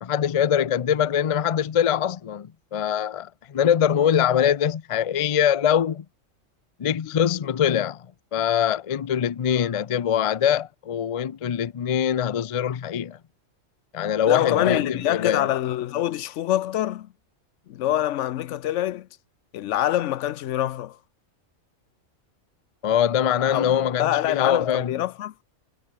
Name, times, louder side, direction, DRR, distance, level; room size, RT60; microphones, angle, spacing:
voice 1, 0.0-6.1 6.8-8.1 8.3-13.2 13.9-15.5 22.8-25.0, left 9 dB, 55° left, 0.3 m, -23 dB
voice 2, 14.3-17.1 17.7-19.1 19.5-21.0 23.5-23.7 24.0-25.3, left 12 dB, 70° left, 0.9 m, -25 dB
omnidirectional pair, 1.3 m